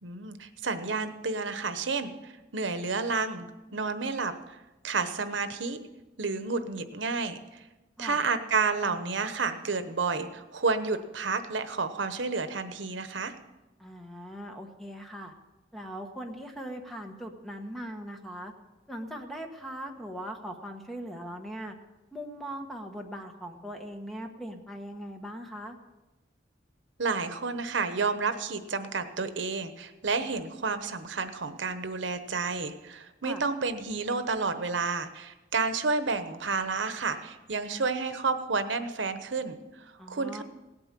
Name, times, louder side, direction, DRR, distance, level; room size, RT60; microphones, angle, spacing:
voice 1, 0.0-3.5 3.7-4.3 4.8-5.8 6.2-7.4 8.0-13.3 27.0-40.4, right 4 dB, 85° right, 10 dB, 1.0 m, -30 dB
voice 2, 13.8-15.3 15.7-18.5 18.9-21.7 22.1-25.8 33.2-33.4 40.0-40.4, equal, ahead, 3 dB, 1.3 m, -40 dB
17.0 x 8.9 x 7.5 m, 1.1 s
head